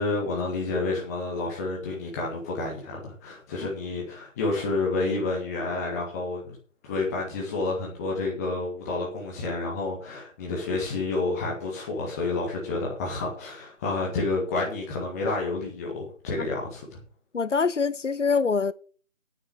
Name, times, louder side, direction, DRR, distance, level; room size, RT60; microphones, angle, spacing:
voice 1, 0.0-6.6 6.8-17.0, left 3 dB, 15° left, 1.7 m, -29 dB
voice 2, 17.3-18.7, left 5 dB, 70° left, 0.8 m, -24 dB
9.6 x 7.7 x 6.2 m
figure-of-eight pair, 155°, 39 cm